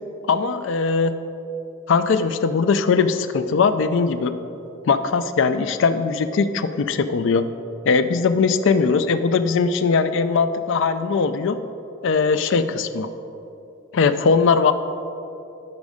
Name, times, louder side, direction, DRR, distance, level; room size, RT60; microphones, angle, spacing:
voice 1, 0.3-1.2 1.9-4.4 4.8-7.5 7.9-11.6 12.0-13.1 13.9-14.7, left 5 dB, 65° left, 11 dB, 0.4 m, -20 dB
12.0 x 5.3 x 4.9 m, 2.9 s
head